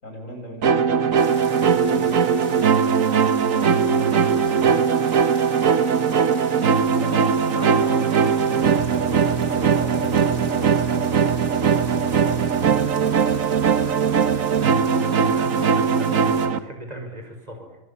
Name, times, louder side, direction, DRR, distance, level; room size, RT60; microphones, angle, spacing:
voice 1, 0.0-5.0 7.0-13.2, left 1 dB, 75° left, 1 dB, 8.1 m, -38 dB
sound 1, 0.6-16.6, right 6 dB, 80° right, 1.6 m, -20 dB
sound 2, 1.2-16.5, right 2 dB, 60° right, 3.1 m, -39 dB
voice 2, 14.9-17.8, equal, 30° right, 4 dB, 6.0 m, -37 dB
25.0 x 21.0 x 8.9 m, 0.92 s
omnidirectional pair, 1.4 m